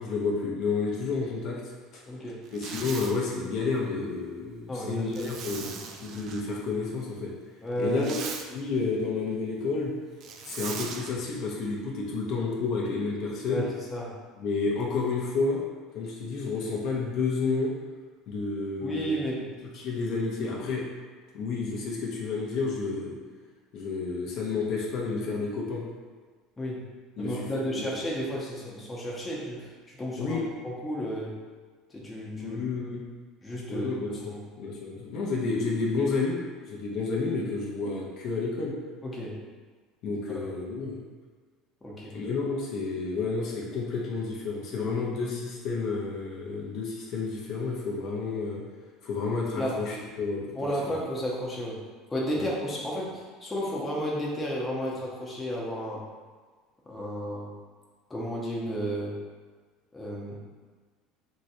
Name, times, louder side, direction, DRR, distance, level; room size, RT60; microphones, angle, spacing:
voice 1, 0.0-1.6 1.9-2.0 2.5-7.3 7.8-8.2 8.5-9.9 10.4-13.6 14.4-15.6 15.9-17.7 18.3-19.2 19.7-20.9 21.3-23.2 23.7-25.8 27.2-27.4 27.8-27.9 30.2-30.4 32.3-33.0 33.7-34.2 34.6-36.4 36.6-38.8 40.0-41.0 42.1-48.6 49.0-50.4 50.8-51.0 52.3-52.5, left 4 dB, 60° left, -3 dB, 0.6 m, -30 dB
voice 2, 2.1-2.4 4.7-5.7 7.6-8.0 13.5-14.2 18.8-19.5 26.6-26.9 27.2-30.4 30.6-31.4 31.9-32.6 33.4-34.4 39.0-39.4 40.3-40.5 41.8-42.1 49.6-49.8 50.5-51.8 52.1-56.0 56.9-57.5 58.1-59.2 59.9-60.4, equal, 15° left, -5 dB, 0.7 m, -33 dB
Zipper (clothing), 2.5-3.1 5.1-6.4 7.8-8.5 10.2-11.1, right 5 dB, 55° right, 0.4 m, -39 dB
3.0 x 2.7 x 2.7 m, 1.4 s
supercardioid pair, 100°, 0 cm